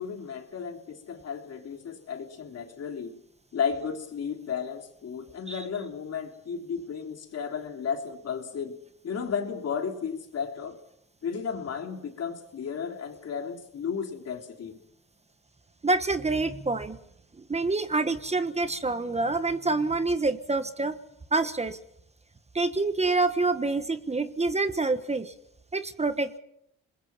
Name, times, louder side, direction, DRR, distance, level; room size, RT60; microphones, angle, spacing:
voice 1, 0.0-3.2 3.5-8.8 9.0-10.8 11.2-14.8, left 6 dB, 55° left, 4 dB, 3.3 m, -33 dB
voice 2, 15.8-17.0 17.4-21.0 21.3-21.8 22.5-25.3 25.7-26.4, right 3 dB, 20° right, 11 dB, 1.3 m, -27 dB
27.5 x 21.5 x 5.8 m, 0.75 s
cardioid pair, 90°, 30 cm